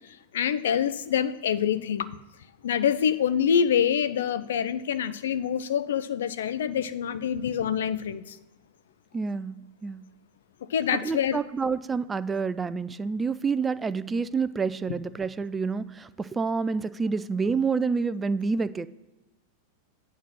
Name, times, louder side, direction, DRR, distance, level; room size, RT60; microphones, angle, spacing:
voice 1, 0.3-2.2 2.6-8.4 10.7-11.4, left 8 dB, 60° left, 13 dB, 0.5 m, -26 dB
voice 2, 9.1-10.0 11.0-18.9, right 5 dB, 15° right, 15 dB, 0.3 m, -28 dB
9.2 x 4.0 x 6.3 m, 1.1 s
figure-of-eight pair, 90°, 0 cm